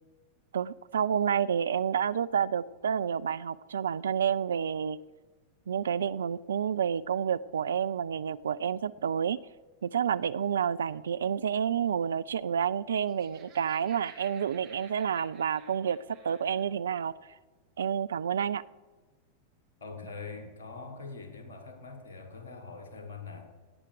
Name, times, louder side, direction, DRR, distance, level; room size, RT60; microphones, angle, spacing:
voice 1, 0.5-5.0 5.7-9.4 9.8-16.0 16.2-17.1 17.8-18.6, right 8 dB, 65° right, 15 dB, 0.3 m, -29 dB
Laughter, 12.8-16.7, right 5 dB, 40° right, 3.0 m, -55 dB
voice 2, 19.8-23.5, left 4 dB, 65° left, 6 dB, 2.1 m, -43 dB
16.5 x 8.9 x 4.9 m, 1.3 s
figure-of-eight pair, 90°, 0 cm